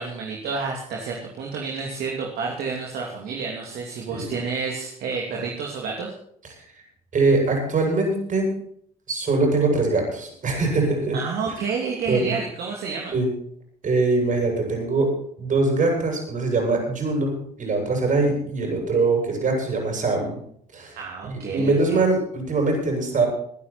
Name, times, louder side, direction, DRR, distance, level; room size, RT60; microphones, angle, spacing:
voice 1, 0.0-6.1 11.1-13.1 21.0-22.0, right 5 dB, 65° right, -1 dB, 2.9 m, -30 dB
voice 2, 7.1-8.5 9.1-11.2 12.1-12.3 13.1-13.3 13.8-15.1 15.4-20.4 20.7-23.3, right 3 dB, 50° right, 1 dB, 7.9 m, -22 dB
22.5 x 9.9 x 4.5 m, 0.64 s
hypercardioid pair, 55°, 17 cm